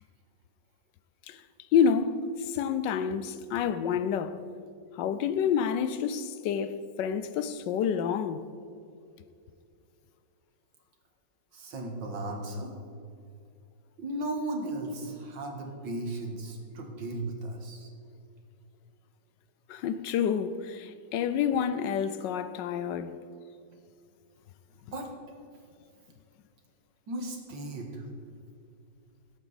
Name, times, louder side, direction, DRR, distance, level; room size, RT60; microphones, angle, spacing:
voice 1, 1.7-4.4 4.9-8.4 19.7-23.2, left 7 dB, 75° left, 1.2 m, -28 dB
voice 2, 11.5-12.7 14.0-17.9 24.9-25.1 27.1-28.1, right 1 dB, 65° right, 2.1 m, -36 dB
17.5 x 8.1 x 4.1 m
omnidirectional pair, 2.1 m